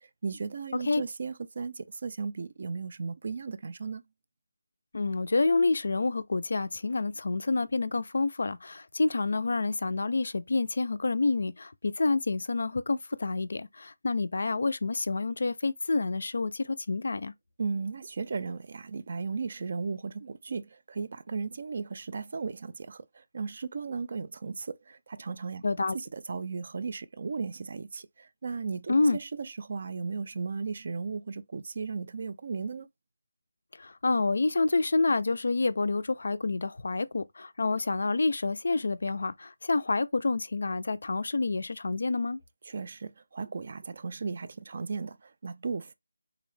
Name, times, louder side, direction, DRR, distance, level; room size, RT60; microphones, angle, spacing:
voice 1, 0.2-4.0 17.6-25.6 25.9-32.9 42.7-45.9, right 4 dB, 40° right, 0.3 m, -36 dB
voice 2, 4.9-17.3 25.6-26.0 28.9-29.2 33.8-42.4, left 3 dB, 60° left, 0.3 m, -28 dB
3.8 x 2.1 x 3.1 m
figure-of-eight pair, 175°, 0 cm